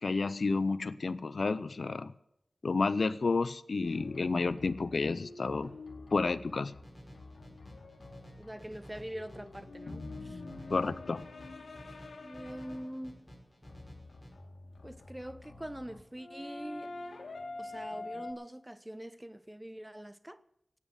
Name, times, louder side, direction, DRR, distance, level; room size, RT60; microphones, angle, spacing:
voice 1, 0.0-2.1 2.6-5.7 6.1-6.7 10.7-11.3, left 3 dB, 75° left, 0.6 m, -30 dB
sound 1, 3.8-13.0 13.7-18.3, left 2 dB, 90° left, 2.1 m, -46 dB
sound 2, 6.8-14.3, equal, 15° left, 5.5 m, -53 dB
voice 2, 8.4-10.4 12.2-13.2 14.8-16.9 17.6-20.4, right 1 dB, 15° right, 0.8 m, -44 dB
14.5 x 9.3 x 8.0 m
cardioid pair, 45°, 0 cm